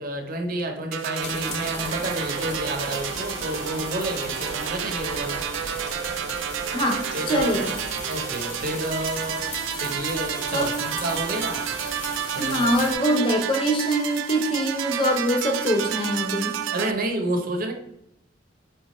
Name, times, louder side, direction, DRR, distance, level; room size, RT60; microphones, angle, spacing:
voice 1, 0.0-5.5 7.1-7.7 8.1-9.5 9.8-11.6 12.3-12.7 16.7-17.7, right 1 dB, 50° right, 4 dB, 0.6 m, -30 dB
sound 1, 0.9-16.9, right 9 dB, 85° right, 0.3 m, -30 dB
sound 2, 1.2-12.9, left 2 dB, 80° left, 1.1 m, -37 dB
voice 2, 6.7-7.7 10.5-10.8 12.4-16.5, equal, 30° left, 3 dB, 0.6 m, -24 dB
4.9 x 2.2 x 2.9 m, 0.78 s
head